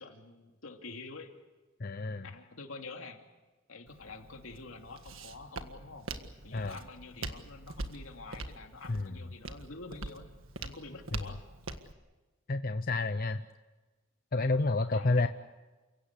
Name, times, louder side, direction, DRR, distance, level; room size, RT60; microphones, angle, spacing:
voice 1, 0.0-1.3 2.2-3.2 3.7-6.1 6.4-10.3 10.6-11.4 14.9-15.3, left 3 dB, 80° left, 3 dB, 2.9 m, -47 dB
voice 2, 1.8-2.3 6.5-6.8 8.9-9.2 12.5-13.4 14.3-15.3, left 3 dB, 45° left, 9 dB, 0.7 m, -29 dB
Walk footsteps, 3.9-11.9, right 3 dB, 75° right, 1.6 m, -44 dB
29.5 x 17.0 x 8.4 m, 1.2 s
head